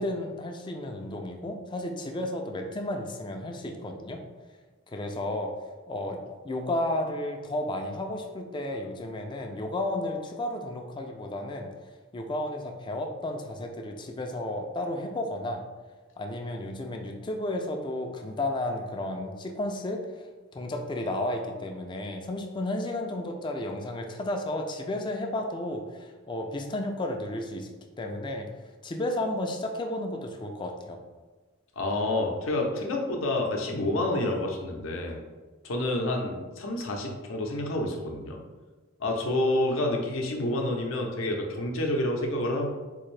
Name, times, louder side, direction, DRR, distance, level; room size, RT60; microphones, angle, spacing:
voice 1, 0.0-4.2 4.9-5.5 5.9-11.7 12.1-15.6 16.2-20.3 20.5-27.7 28.0-28.5 28.8-31.0, left 1 dB, 25° left, 3 dB, 0.4 m, -32 dB
voice 2, 31.8-35.2 35.6-38.4 39.0-42.7, left 1 dB, 70° left, 2 dB, 0.6 m, -28 dB
3.7 x 2.6 x 3.2 m, 1.3 s
head